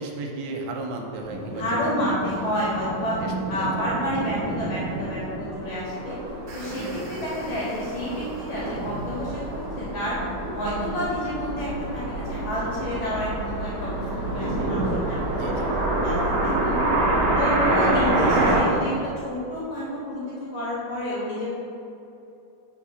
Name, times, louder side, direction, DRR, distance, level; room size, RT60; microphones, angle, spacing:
voice 1, 0.0-2.5 3.2-3.9 6.7-7.0 15.3-15.7, right 2 dB, 85° right, 1 dB, 2.7 m, -35 dB
sound 1, 1.3-18.6, right 2 dB, 70° right, 2.4 m, -28 dB
voice 2, 1.5-3.2 3.5-6.2 6.5-10.2 10.5-15.7 16.0-16.8 17.4-18.9 19.2-20.2 20.5-21.5, equal, 60° left, -7 dB, 2.3 m, -30 dB
sound 2, 2.5-18.6, right 1 dB, 80° left, 2.6 m, -36 dB
sound 3, 6.3-9.5, right 1 dB, 45° right, 1.7 m, -47 dB
7.3 x 3.6 x 6.2 m, 2.9 s
omnidirectional pair, 4.7 m